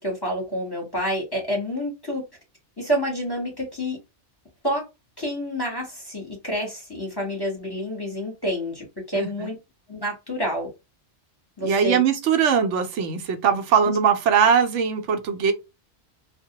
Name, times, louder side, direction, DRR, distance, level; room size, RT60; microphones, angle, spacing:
voice 1, 0.0-2.2 2.8-4.0 4.6-4.8 5.2-9.5 9.9-10.7 11.6-12.0 13.8-13.9, equal, 25° left, 0.8 m, -28 dB
voice 2, 9.1-9.5 11.6-15.5, right 7 dB, 85° right, 0.9 m, -21 dB
2.2 x 2.0 x 2.7 m
omnidirectional pair, 1.2 m